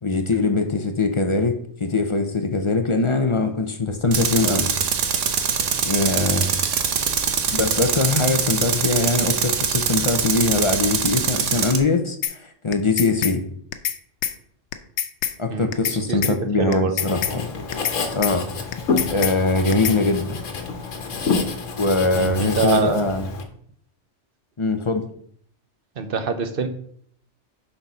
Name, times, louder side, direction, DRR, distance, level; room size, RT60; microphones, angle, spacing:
voice 1, 0.0-4.7 5.8-6.5 7.3-13.4 15.4-17.5 18.1-18.4 19.1-20.4 21.8-23.3 24.6-25.1, left 3 dB, 30° left, 6 dB, 0.6 m, -22 dB
Tools, 4.1-11.8, right 7 dB, 80° right, 1.2 m, -23 dB
sound 1, 12.2-12.3 12.7-13.3 13.7-14.0 14.2-14.3 14.7-15.3 15.7-16.0 16.2-16.3 16.7-17.3 17.7-18.0 18.2-18.3 18.7-19.3 19.7-20.0, left 10 dB, 70° left, 0.9 m, -25 dB
voice 2, 15.5-16.9 22.1-23.0 26.0-26.7, right 6 dB, 50° right, 8 dB, 0.9 m, -25 dB
Writing, 17.0-23.4, left 4 dB, 85° left, 1.4 m, -28 dB
6.6 x 4.6 x 5.6 m, 0.63 s
omnidirectional pair, 1.3 m